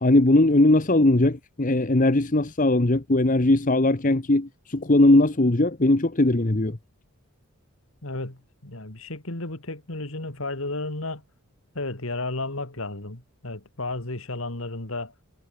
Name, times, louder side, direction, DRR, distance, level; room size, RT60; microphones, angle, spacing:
voice 1, 0.0-6.8, left 2 dB, 35° left, 1.1 m, -20 dB
voice 2, 8.0-11.2 11.7-15.1, left 2 dB, 70° left, 2.8 m, -33 dB
head